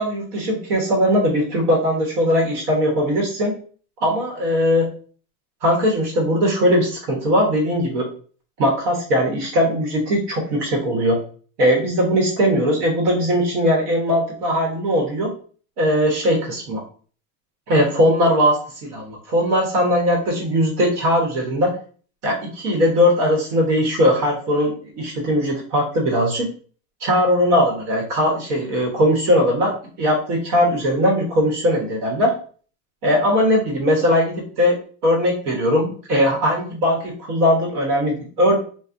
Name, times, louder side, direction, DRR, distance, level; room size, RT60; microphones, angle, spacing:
voice 1, 0.0-3.5 4.0-4.9 5.6-8.1 8.6-11.2 11.6-15.3 15.8-16.8 17.7-21.7 22.2-26.5 27.0-29.7 30.0-32.3 33.0-34.8 35.0-38.6, equal, 80° right, 0 dB, 1.4 m, -19 dB
3.9 x 2.3 x 2.6 m, 0.43 s
supercardioid pair, 130°, 45 cm